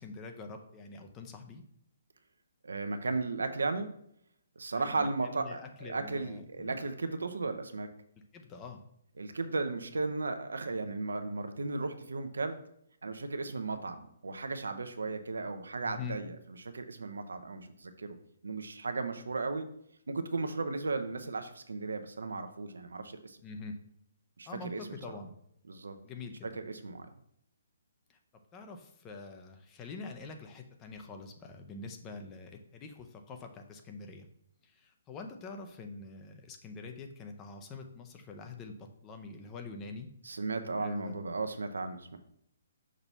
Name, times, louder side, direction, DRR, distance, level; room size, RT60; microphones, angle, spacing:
voice 1, 0.0-1.6 4.7-6.8 8.3-8.8 15.8-16.2 23.4-23.7 24.5-25.3 26.0-26.6 28.1-28.2 28.5-34.3 34.6-40.1 40.8-41.2, left 4 dB, 20° left, 4 dB, 0.6 m, -45 dB
voice 2, 2.6-3.9 4.6-7.9 9.2-12.6 13.0-18.2 18.4-19.7 20.1-23.4 24.4-24.8 25.7-26.0 26.4-27.1 40.2-42.2, right 3 dB, 70° right, 8 dB, 0.6 m, -35 dB
6.0 x 2.9 x 5.5 m, 0.72 s
figure-of-eight pair, 130°, 0 cm